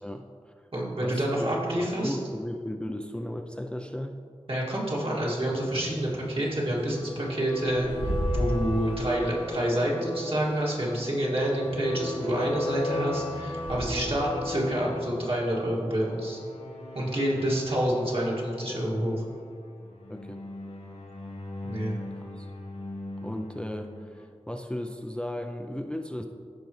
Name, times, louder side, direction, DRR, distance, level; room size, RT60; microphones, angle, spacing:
voice 1, 0.0-0.5 1.0-1.5 1.8-4.2 14.1-14.2 17.3-17.4 20.1-20.4 22.2-22.5 23.2-26.3, left 1 dB, 10° left, 4 dB, 0.4 m, -36 dB
voice 2, 0.7-2.2 4.5-16.4 16.9-19.3 21.6-22.0, right 1 dB, 55° right, -5 dB, 2.2 m, -28 dB
sound 1, 5.5-24.2, left 2 dB, 75° left, 1.9 m, -38 dB
Bird / Wind, 5.6-14.3, equal, 80° right, 2.0 m, -36 dB
15.5 x 5.2 x 3.1 m, 2.2 s
wide cardioid pair, 60°, 11 cm